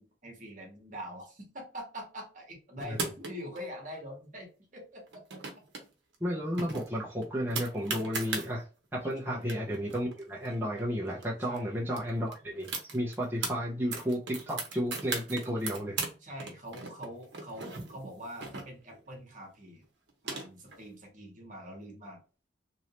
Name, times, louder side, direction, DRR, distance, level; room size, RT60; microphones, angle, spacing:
voice 1, 0.0-5.2 9.2-9.5 11.5-11.8 16.2-19.8 20.2-22.2, equal, 45° right, 1 dB, 1.3 m, -44 dB
sound 1, 2.8-3.6 5.1-5.8 6.1-6.2 6.6-8.5 9.1-9.2 9.4-11.2 11.6-11.7 11.9-13.5 13.9-16.1 16.4-19.0 19.8-20.8, right 4 dB, 65° right, 0.9 m, -37 dB
voice 2, 6.2-8.7 8.9-16.0, equal, 10° right, -5 dB, 0.7 m, -33 dB
3.1 x 2.7 x 2.9 m, 0.35 s
head